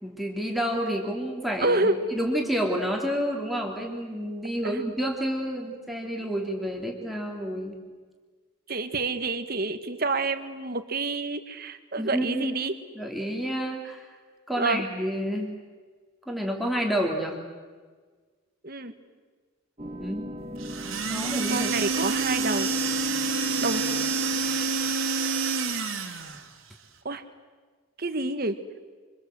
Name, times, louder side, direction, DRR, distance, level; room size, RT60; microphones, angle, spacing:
voice 1, 0.0-7.8 12.0-12.6 12.9-14.1 14.5-15.5 16.3-17.4 20.0-20.3 21.1-21.7, equal, ahead, 0 dB, 3.3 m, -29 dB
voice 2, 1.6-1.9 4.6-4.8 8.7-12.7 14.6-14.8 18.6-18.9 21.5-22.7 23.6-23.9 27.0-27.2 28.0-28.6, right 3 dB, 45° right, 9 dB, 1.7 m, -28 dB
sound 1, 19.8-25.0, right 1 dB, 30° right, 1.6 m, -40 dB
sound 2, 20.6-26.5, right 4 dB, 75° right, 2.8 m, -27 dB
27.5 x 26.0 x 7.9 m, 1.5 s
head